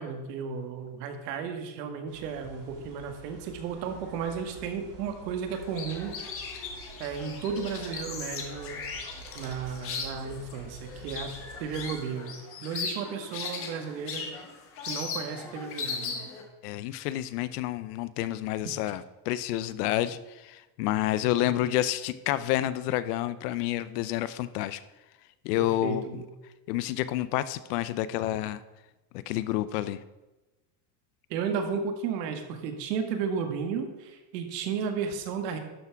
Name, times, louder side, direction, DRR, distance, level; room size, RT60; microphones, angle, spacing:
voice 1, 0.0-6.1 7.0-8.8 9.3-11.3 11.6-14.3 14.9-16.3 25.6-26.2 31.3-35.6, right 6 dB, 75° right, 6 dB, 1.7 m, -34 dB
sound 1, 2.1-11.9, right 3 dB, 45° right, 3.6 m, -48 dB
sound 2, 5.5-16.4, left 5 dB, 25° left, 1.3 m, -38 dB
voice 2, 16.6-24.8 25.4-26.0 26.7-28.6 29.1-30.0, left 14 dB, 70° left, 15 dB, 0.7 m, -29 dB
12.0 x 6.0 x 4.5 m, 1.1 s
cardioid pair, 175°, 49 cm